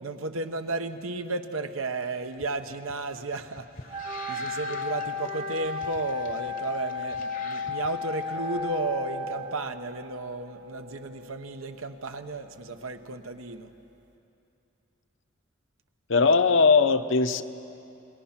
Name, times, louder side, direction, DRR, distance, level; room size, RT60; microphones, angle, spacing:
voice 1, 0.0-4.0 4.3-13.7, right 3 dB, 90° right, 8 dB, 1.1 m, -33 dB
sound 1, 2.3-8.6, left 5 dB, 40° left, 0.8 m, -46 dB
Wind instrument woodwind instrument, 3.9-9.8, left 4 dB, 25° right, 0.8 m, -33 dB
sound 2, 8.3-13.8, left 3 dB, 55° right, 1.3 m, -44 dB
voice 2, 16.1-17.4, left 4 dB, 70° left, 9 dB, 0.8 m, -20 dB
28.5 x 20.0 x 5.9 m, 2.8 s
head